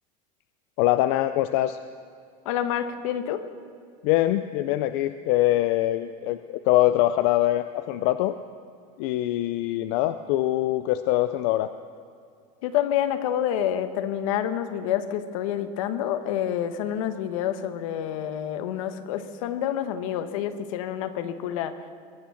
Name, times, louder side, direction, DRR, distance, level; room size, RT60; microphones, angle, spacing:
voice 1, 0.8-1.8 4.0-8.4 9.0-11.7, left 15 dB, 55° left, 11 dB, 0.5 m, -23 dB
voice 2, 2.4-3.4 12.6-21.7, left 10 dB, 70° left, 10 dB, 1.2 m, -28 dB
21.5 x 9.0 x 7.1 m, 2.3 s
supercardioid pair, 165°, 17 cm